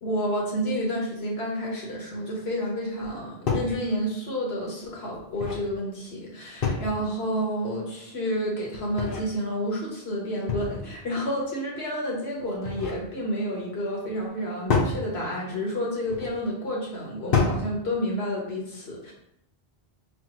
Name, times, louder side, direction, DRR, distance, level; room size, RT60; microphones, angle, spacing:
voice 1, 0.0-19.1, equal, 85° left, -3 dB, 1.5 m, -30 dB
sound 1, 3.0-3.1 3.5-3.8 5.1-5.7 6.6-7.1 8.7-9.3 10.5-11.0 12.4-13.0 14.7-15.0 16.0-16.3 17.3-17.7, left 4 dB, 65° left, 1.0 m, -27 dB
5.8 x 2.1 x 2.9 m, 0.78 s
omnidirectional pair, 1.0 m